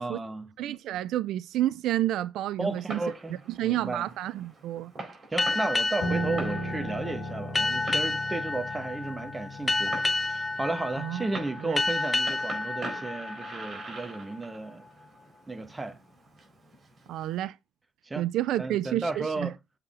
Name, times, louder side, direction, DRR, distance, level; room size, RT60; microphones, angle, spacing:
voice 1, 0.0-0.5 2.6-4.1 5.3-14.8 15.5-16.0 18.0-18.3 18.6-19.6, right 3 dB, 20° right, 1.2 m, -34 dB
voice 2, 0.6-3.0 3.6-4.9 11.0-11.3 11.6-11.8 17.1-17.6 18.2-19.5, right 13 dB, 85° right, 0.3 m, -30 dB
Fireworks, 2.6-17.4, right 2 dB, 40° right, 4.3 m, -45 dB
sound 1, 5.4-14.5, left 2 dB, 25° left, 0.7 m, -31 dB
Piano, 6.0-11.3, right 1 dB, 80° left, 2.2 m, -36 dB
7.9 x 4.2 x 3.7 m
cardioid pair, 90°, 0 cm